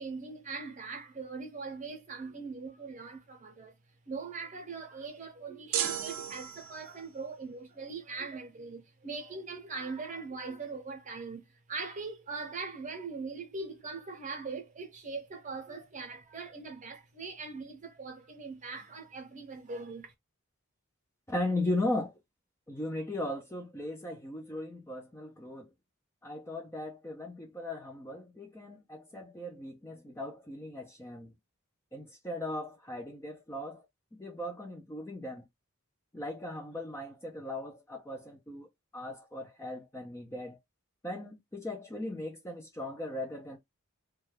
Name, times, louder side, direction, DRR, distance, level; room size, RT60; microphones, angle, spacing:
voice 1, 0.0-3.7 4.1-20.1, right 4 dB, 35° right, 0.7 m, -41 dB
sound 1, 5.7-7.1, right 9 dB, 80° right, 0.5 m, -34 dB
voice 2, 21.3-22.1 22.7-25.7 26.2-31.3 31.9-33.8 34.1-35.5 36.1-40.6 41.0-43.6, left 1 dB, 10° left, 0.4 m, -37 dB
2.3 x 2.2 x 3.1 m
head